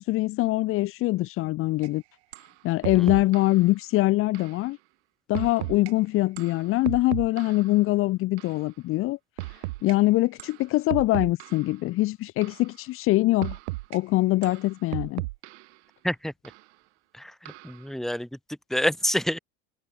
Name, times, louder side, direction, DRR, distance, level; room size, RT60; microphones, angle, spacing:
voice 1, 0.0-2.0 2.6-4.8 5.3-9.2 9.5-13.6 13.9-15.2, left 18 dB, 40° left, 0.9 m, -23 dB
sound 1, 1.8-1.9 2.3-2.5 2.8-3.6 4.3-4.6 5.3-5.9 6.4-7.7 8.4-8.6 9.4-9.9 10.4-10.6 10.9-11.7 12.4-12.7 13.4-14.0 14.4-15.7 16.4-16.6 17.5-17.8, right 21 dB, 85° right, 0.5 m, -35 dB
voice 2, 2.9-3.3 16.0-16.3 17.1-19.4, equal, ahead, 2.6 m, -28 dB
supercardioid pair, 130°, 33 cm